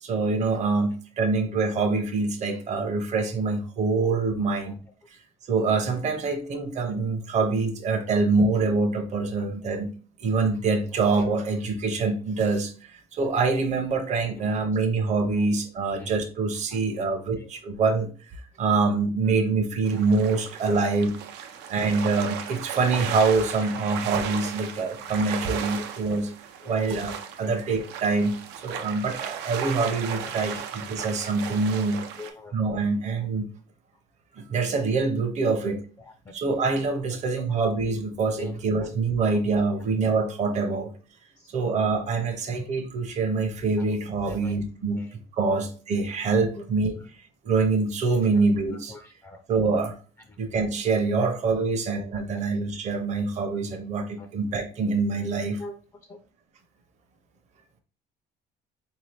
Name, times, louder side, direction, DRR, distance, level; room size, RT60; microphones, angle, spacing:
voice 1, 0.0-4.8 5.5-9.9 10.2-21.2 21.7-26.3 26.7-32.0 32.5-33.5 34.3-35.8 36.3-40.9 41.5-45.1 45.3-46.9 47.4-49.0 49.5-49.9 50.4-55.6, right 4 dB, 45° right, 0.7 m, -25 dB
sound 1, 19.8-32.3, right 8 dB, 90° right, 0.5 m, -36 dB
voice 2, 30.2-30.6 32.2-32.5 38.4-38.5 39.3-39.4 44.2-44.5 45.0-45.1 45.5-45.6 48.9-49.4 54.2-54.3 55.6-55.7 56.1-56.2, left 3 dB, 20° left, 0.4 m, -43 dB
3.7 x 2.7 x 3.2 m
cardioid pair, 110°, 17 cm